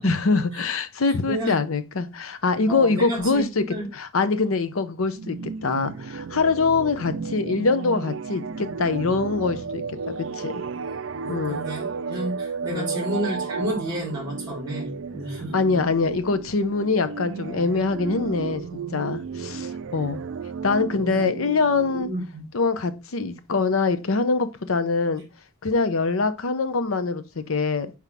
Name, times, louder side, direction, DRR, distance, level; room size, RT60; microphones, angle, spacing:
voice 1, 0.0-3.6 3.9-5.4 5.6-10.6 11.3-11.7 12.7-13.0 15.5-18.6 18.9-20.2 20.6-22.1 22.5-25.2 25.6-27.9, left 4 dB, 75° left, 0.7 m, -24 dB
voice 2, 1.0-1.6 2.7-3.9 10.9-15.5 21.1-21.2 22.0-22.4, right 1 dB, 20° right, 3.0 m, -31 dB
sound 1, 5.2-22.1, right 5 dB, 65° right, 0.4 m, -33 dB
5.8 x 4.7 x 3.4 m
head